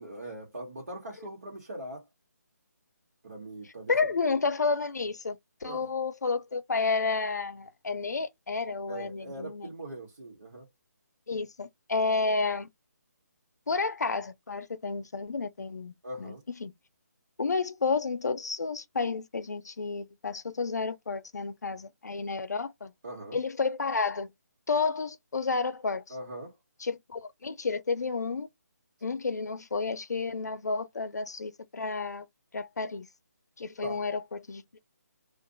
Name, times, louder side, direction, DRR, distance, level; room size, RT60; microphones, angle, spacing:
voice 1, 0.0-2.0 3.2-4.2 5.6-5.9 8.9-10.7 16.0-16.4 23.0-23.4 26.1-26.5 33.8-34.0, right 1 dB, 50° right, 1.3 m, -41 dB
voice 2, 3.9-9.7 11.3-12.7 13.7-16.3 16.6-16.7 17.4-22.9 23.3-24.3 24.7-26.1 26.8-28.5 29.0-32.3 32.5-33.1 33.6-34.8, left 4 dB, 70° left, 0.6 m, -31 dB
2.5 x 2.3 x 3.8 m
hypercardioid pair, 180°, 9 cm